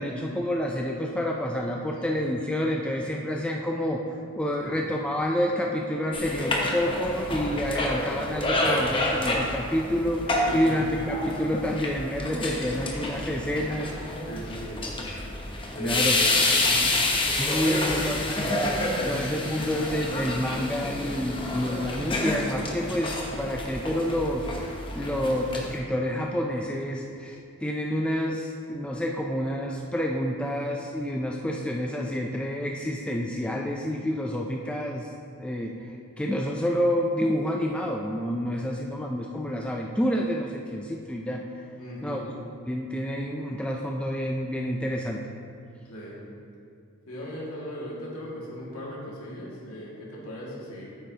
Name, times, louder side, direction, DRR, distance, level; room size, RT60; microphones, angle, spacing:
voice 1, 0.0-4.0 4.3-13.9 15.8-16.2 17.4-18.6 19.0-35.1 35.4-35.8 36.2-41.4 42.0-42.2 42.7-45.2, equal, 5° left, 0 dB, 0.3 m, -28 dB
sound 1, 6.1-25.8, left 1 dB, 25° left, 0.9 m, -28 dB
voice 2, 10.4-10.8 14.3-14.9 15.7-16.9 19.0-19.2 25.0-25.3 38.7-38.8 41.8-42.2 45.9-46.2 47.1-50.9, equal, 80° left, -6 dB, 2.1 m, -38 dB
8.9 x 8.7 x 2.8 m, 2.4 s
head